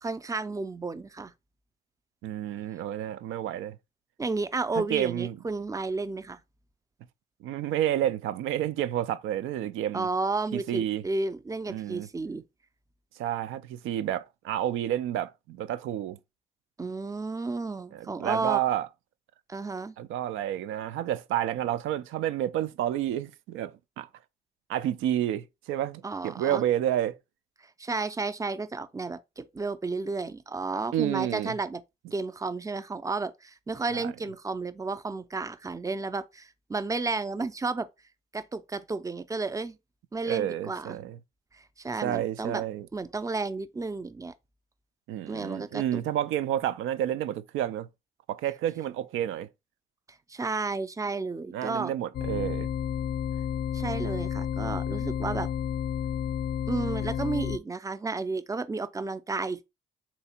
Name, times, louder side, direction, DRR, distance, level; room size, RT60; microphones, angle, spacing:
voice 1, 0.0-1.3 4.2-6.4 9.9-12.4 16.8-18.6 19.5-20.0 26.0-26.6 27.8-31.8 32.1-37.9 38.3-39.8 40.1-41.0 41.5-42.6 42.9-44.3 45.3-46.0 50.3-51.9 53.7-55.5 56.7-59.6, right 3 dB, 15° right, 0.4 m, -32 dB
voice 2, 2.2-3.8 4.7-5.4 7.4-10.1 10.5-11.0 11.7-12.1 13.2-16.2 17.9-18.9 20.0-24.1 24.7-27.2 30.9-31.5 33.9-34.1 40.3-41.2 42.0-42.9 45.1-47.9 48.3-49.5 51.5-52.7, right 11 dB, 90° right, 0.5 m, -30 dB
sound 1, 52.1-57.6, left 9 dB, 50° left, 0.4 m, -31 dB
3.3 x 2.8 x 4.3 m
cardioid pair, 90°, 20 cm